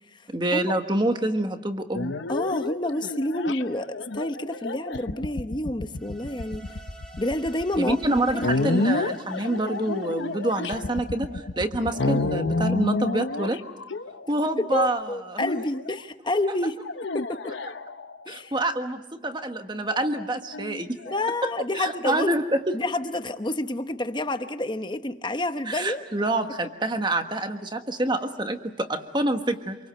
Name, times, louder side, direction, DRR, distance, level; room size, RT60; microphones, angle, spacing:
voice 1, 0.3-2.1 7.8-13.6 14.3-15.4 18.3-21.0 21.4-21.5 21.7-22.7 25.7-29.8, right 1 dB, 25° right, 7 dB, 1.4 m, -27 dB
sound 1, 1.9-14.6 15.4-16.0 16.8-18.3 19.9-21.3, left 2 dB, 75° left, 0.9 m, -30 dB
voice 2, 2.3-6.6 7.2-8.8 14.6-16.8 17.1-17.6 18.3-18.5 21.1-22.3 22.7-26.0, left 1 dB, 25° left, 9 dB, 0.9 m, -29 dB
sound 2, 5.9-11.2, right 1 dB, 5° left, 2.0 m, -50 dB
27.5 x 23.5 x 7.8 m, 1.0 s
head